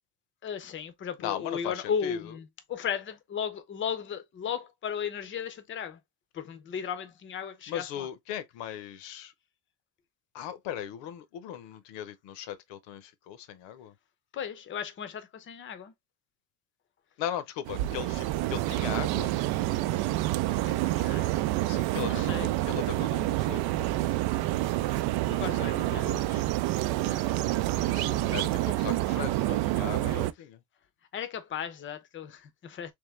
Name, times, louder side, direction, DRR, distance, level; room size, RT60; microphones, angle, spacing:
voice 1, 0.4-6.0 6.3-8.1 14.3-15.9 20.7-21.4 22.0-22.5 25.2-26.1 27.0-27.3 28.0-28.2 28.8-29.0 31.1-32.9, left 7 dB, 25° left, 0.6 m, -36 dB
voice 2, 1.2-2.4 7.7-9.3 10.3-13.9 17.2-19.3 21.7-24.2 25.5-26.6 27.7-30.6, left 10 dB, 75° left, 0.9 m, -38 dB
sound 1, 17.7-30.3, right 16 dB, 60° right, 0.5 m, -28 dB
3.6 x 3.2 x 3.2 m
cardioid pair, 160°, 43 cm